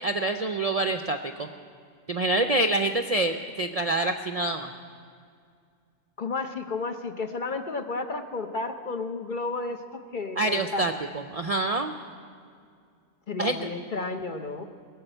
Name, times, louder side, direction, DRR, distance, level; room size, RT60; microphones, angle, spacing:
voice 1, 0.0-1.5 2.1-4.7 10.4-12.0 13.4-13.7, right 2 dB, 50° right, 7 dB, 0.4 m, -26 dB
voice 2, 6.2-10.8 13.3-14.6, left 3 dB, 45° left, 6 dB, 0.8 m, -32 dB
19.0 x 7.3 x 9.0 m, 2.2 s
omnidirectional pair, 1.3 m